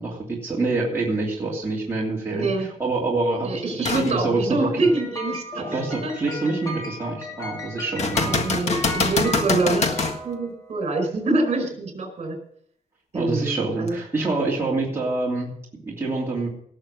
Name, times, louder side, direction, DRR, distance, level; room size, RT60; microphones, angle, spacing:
voice 1, 0.0-4.9 5.5-8.4 13.1-16.5, right 3 dB, 15° right, -5 dB, 2.8 m, -26 dB
voice 2, 2.3-2.7 3.4-6.1 6.4-6.5 8.2-12.4 13.1-14.0, right 2 dB, 45° right, 5 dB, 4.8 m, -26 dB
sound 1, 3.8-4.1 4.7-4.8 8.0-10.2 13.9-14.0, left 4 dB, 50° left, 1.6 m, -24 dB
sound 2, 4.8-10.8, equal, 25° left, 2.8 m, -35 dB
18.5 x 6.8 x 6.6 m, 0.66 s
wide cardioid pair, 160°, 14 cm